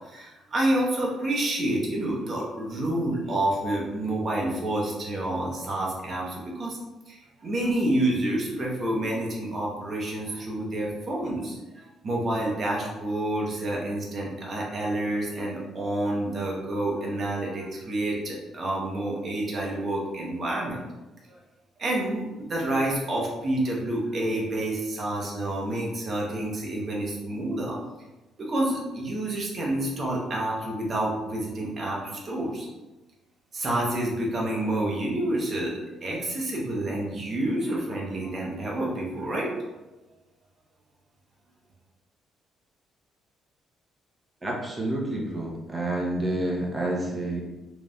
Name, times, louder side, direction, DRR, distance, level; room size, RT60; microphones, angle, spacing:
voice 1, 0.0-6.8 7.1-20.8 21.2-21.4 21.8-27.8 28.4-32.7 33.5-39.6, right 1 dB, 45° right, -3 dB, 0.9 m, -28 dB
voice 2, 44.4-47.4, right 1 dB, 15° right, -2 dB, 0.9 m, -29 dB
3.0 x 2.6 x 2.4 m, 1.1 s
supercardioid pair, 65°, 0 cm